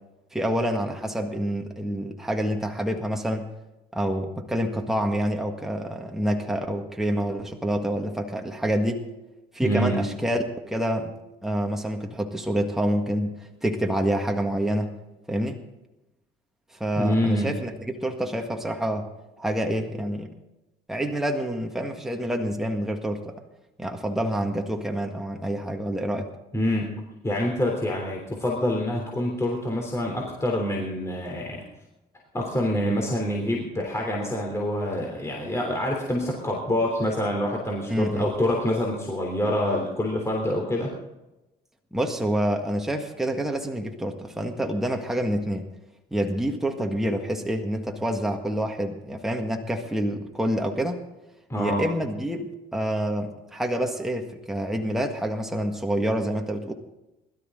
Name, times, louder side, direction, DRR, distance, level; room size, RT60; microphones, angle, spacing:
voice 1, 0.3-3.5 3.9-9.1 9.5-11.1 11.4-14.9 15.3-15.6 16.7-19.1 19.4-20.3 20.9-23.4 23.8-26.3 37.9-38.3 41.9-45.7 46.1-51.0 51.6-56.7, right 1 dB, ahead, 2 dB, 1.8 m, -27 dB
voice 2, 9.6-10.0 16.9-17.5 26.5-27.0 27.2-31.6 32.3-40.9 51.5-51.8, left 1 dB, 15° left, 0 dB, 3.4 m, -26 dB
21.5 x 13.0 x 3.9 m, 0.98 s
cardioid pair, 110°, 17 cm